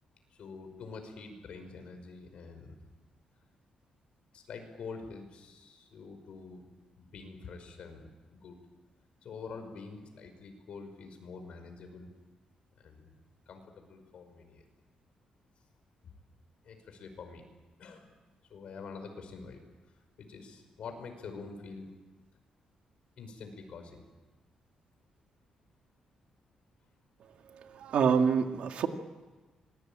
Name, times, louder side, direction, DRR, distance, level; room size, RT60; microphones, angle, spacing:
voice 1, 0.3-2.8 4.3-6.7 7.0-8.6 9.2-12.1 12.8-13.1 13.5-14.7 16.0-16.2 16.6-17.4 17.8-18.1 18.5-19.6 19.9-21.9 23.2-24.1, left 4 dB, 60° left, 6 dB, 5.4 m, -46 dB
voice 2, 27.6-28.9, right 6 dB, 70° right, 5 dB, 2.2 m, -26 dB
26.0 x 21.5 x 8.9 m, 1.3 s
wide cardioid pair, 150°, 2 cm